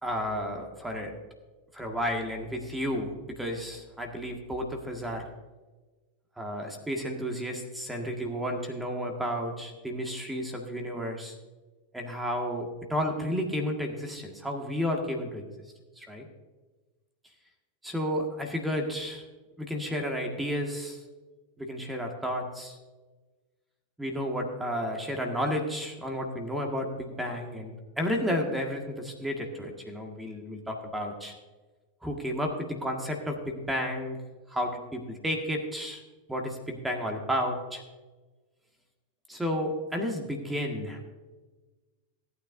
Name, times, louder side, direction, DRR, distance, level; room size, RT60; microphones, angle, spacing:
voice 1, 0.0-1.1 1.7-5.3 6.4-11.3 11.9-15.4 16.0-16.3 17.8-19.2 19.6-21.0 21.6-22.8 24.0-31.3 32.0-34.2 34.5-36.0 36.3-37.8 39.3-41.0, equal, 5° right, 2 dB, 1.7 m, -32 dB
18.0 x 9.4 x 2.6 m, 1.2 s
figure-of-eight pair, 90°, 0 cm